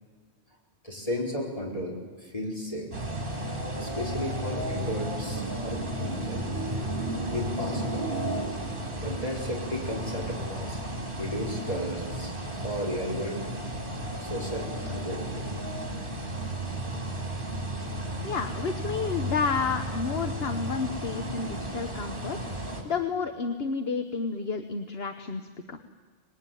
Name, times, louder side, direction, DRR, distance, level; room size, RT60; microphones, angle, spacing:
voice 1, 0.8-2.9 3.7-6.4 7.3-8.2 9.0-10.8 11.2-13.5 14.2-15.6 16.5-16.6, equal, 35° left, -2 dB, 4.8 m, -34 dB
sound 1, 2.9-22.8, right 1 dB, 55° right, 4.0 m, -33 dB
voice 2, 18.2-22.4 22.8-25.8, left 5 dB, 70° left, 7 dB, 1.3 m, -30 dB
25.5 x 20.0 x 9.2 m, 1.5 s
omnidirectional pair, 1.1 m